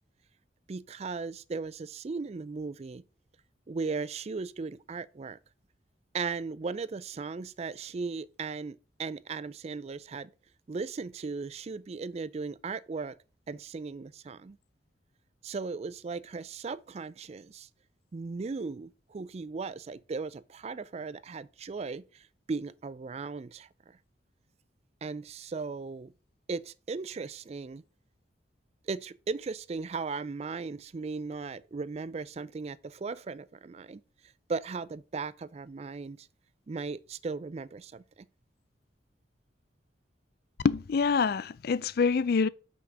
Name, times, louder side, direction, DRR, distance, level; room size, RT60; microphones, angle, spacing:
voice 1, 0.7-3.0 3.7-5.4 6.1-10.3 10.7-13.2 13.5-14.6 15.4-17.7 18.1-24.0 25.0-26.1 26.5-27.8 28.9-34.0 34.5-36.3 36.7-38.3, right 4 dB, 35° right, 0.4 m, -37 dB
voice 2, 40.6-42.5, left 5 dB, 55° left, 0.4 m, -26 dB
6.0 x 5.8 x 6.1 m
head